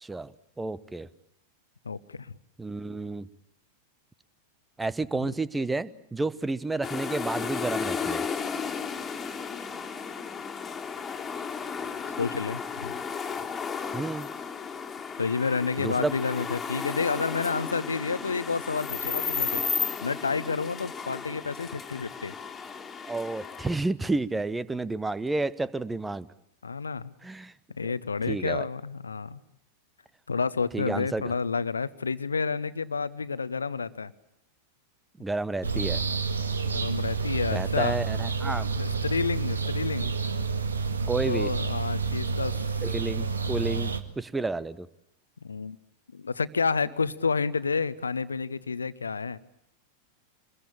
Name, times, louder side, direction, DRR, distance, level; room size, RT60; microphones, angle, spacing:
voice 1, 0.0-1.1 2.6-3.3 4.8-8.2 13.9-14.3 15.8-16.1 23.0-26.3 27.2-27.5 27.8-27.9 28.3-28.7 30.7-31.3 35.2-36.0 37.5-38.7 41.1-41.5 42.8-44.9, right 3 dB, 10° right, 19 dB, 1.0 m, -31 dB
voice 2, 1.8-2.3 12.2-13.0 15.2-19.6 20.0-22.3 26.6-27.1 27.7-29.4 30.3-34.1 36.6-38.0 38.8-40.1 41.3-42.6 43.2-44.0 45.4-45.8 46.1-49.4, left 5 dB, 75° left, 16 dB, 1.0 m, -30 dB
sound 1, 6.8-23.8, left 6 dB, 20° left, 2.9 m, -34 dB
sound 2, 35.6-44.0, right 5 dB, 75° right, 1.7 m, -29 dB
26.5 x 21.5 x 8.7 m, 0.77 s
figure-of-eight pair, 90°, 0 cm